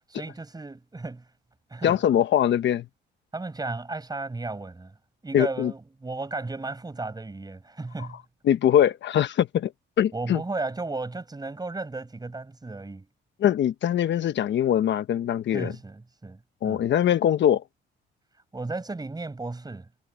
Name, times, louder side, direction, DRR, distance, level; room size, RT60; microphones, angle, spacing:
voice 1, 0.1-1.3 1.7-2.0 3.3-4.9 5.2-8.2 10.1-13.1 15.5-16.9 18.5-19.9, right 3 dB, 20° right, 5.4 m, -34 dB
voice 2, 1.8-2.8 5.3-5.7 8.4-9.7 10.0-10.4 13.4-15.7 16.6-17.6, left 10 dB, 65° left, 1.0 m, -22 dB
cardioid pair, 90°, 20 cm